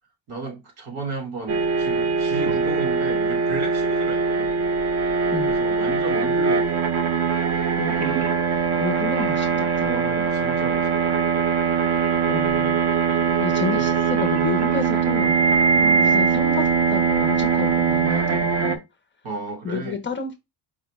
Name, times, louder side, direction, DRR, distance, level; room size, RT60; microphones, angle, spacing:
voice 1, 0.3-4.5 5.5-6.9 8.7-11.2 13.8-13.9 15.7-16.1 19.2-20.0, right 3 dB, 75° right, 1.7 m, -34 dB
sound 1, 1.5-18.8, right 5 dB, 35° right, 0.5 m, -21 dB
voice 2, 7.8-8.2 8.5-10.0 12.3-12.8 13.4-15.4 16.0-18.8 19.6-20.4, left 5 dB, 25° left, 0.5 m, -31 dB
4.8 x 2.0 x 4.5 m
cardioid pair, 180°, 47 cm